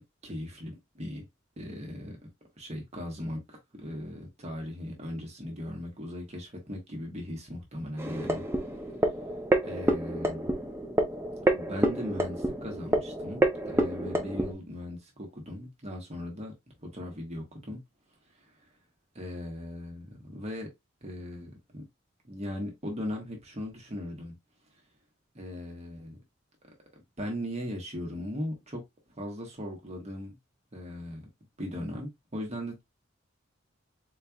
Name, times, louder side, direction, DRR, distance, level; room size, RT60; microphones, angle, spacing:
voice 1, 0.2-1.3 1.6-2.2 2.6-8.4 9.6-10.5 11.5-16.5 16.8-17.8 18.4-18.5 19.1-20.7 21.0-21.8 22.2-24.4 25.3-26.2 27.2-28.8 29.2-30.4 30.7-31.2 31.6-32.8, left 1 dB, 35° right, 1.3 m, -38 dB
sound 1, 8.0-14.5, right 1 dB, 15° right, 0.6 m, -28 dB
4.0 x 3.2 x 2.3 m
head